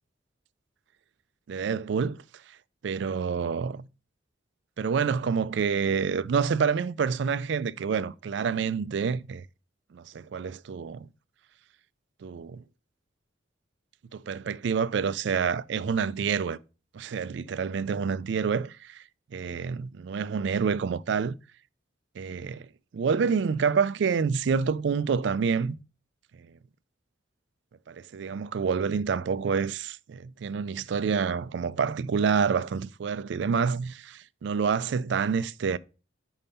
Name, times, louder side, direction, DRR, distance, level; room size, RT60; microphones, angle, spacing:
voice 1, 1.5-2.2 2.8-3.9 4.8-9.5 9.9-11.1 12.2-12.6 14.1-16.6 16.9-19.0 19.3-21.4 22.2-22.7 22.9-25.8 26.4-26.5 27.9-35.8, right 6 dB, 65° right, 0.3 m, -28 dB
5.5 x 5.3 x 5.3 m
head